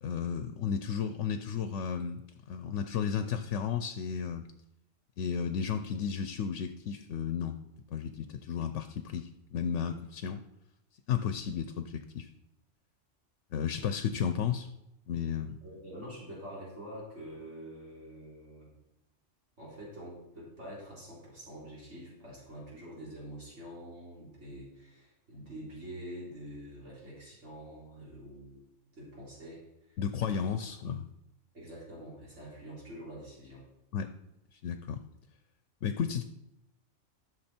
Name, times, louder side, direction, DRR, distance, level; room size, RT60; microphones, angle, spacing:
voice 1, 0.0-2.2 2.5-4.5 5.2-7.6 7.9-10.4 11.1-12.3 13.5-14.7 15.1-15.6 30.0-31.1 33.9-34.1 34.5-35.0 35.8-36.2, left 7 dB, 80° left, 9 dB, 1.0 m, -33 dB
voice 2, 15.6-18.7 19.6-28.7 28.9-29.6 29.9-30.0 30.2-30.4 31.5-33.6, equal, 70° right, -6 dB, 4.1 m, -46 dB
13.5 x 6.5 x 4.4 m, 0.84 s
omnidirectional pair, 1.3 m